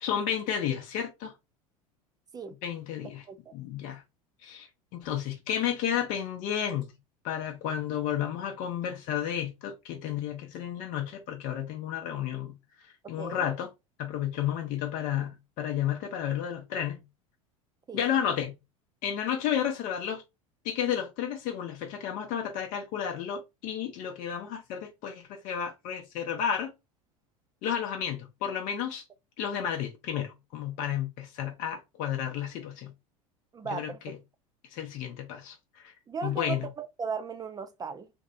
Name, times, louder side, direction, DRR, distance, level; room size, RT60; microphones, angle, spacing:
voice 1, 0.0-1.3 2.6-3.2 3.5-4.0 4.4-6.9 7.2-12.5 13.1-13.7 14.0-17.0 17.9-18.5 19.0-20.2 20.6-26.7 27.6-29.0 29.4-32.9 33.7-34.2 34.7-35.9 36.2-36.6, left 9 dB, 50° left, 0.6 m, -32 dB
voice 2, 3.0-3.5 13.0-13.5 17.9-18.0 33.5-34.0 36.1-38.1, right 5 dB, 20° right, 0.5 m, -37 dB
2.6 x 2.0 x 2.6 m
hypercardioid pair, 80°, 18 cm